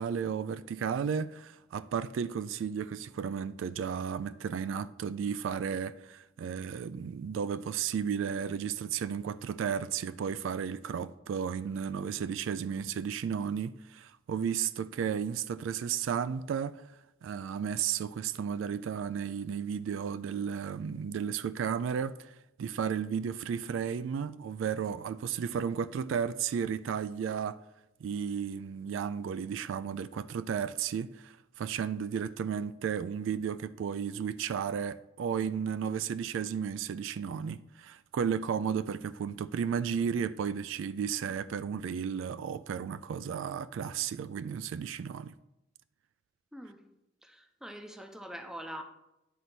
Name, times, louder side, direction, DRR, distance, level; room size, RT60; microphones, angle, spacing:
voice 1, 0.0-16.8 17.2-27.6 28.0-45.3, right 7 dB, 70° right, 0.3 m, -33 dB
voice 2, 46.5-46.9 47.2-48.8, equal, 5° right, 0.6 m, -44 dB
9.4 x 4.0 x 5.9 m
head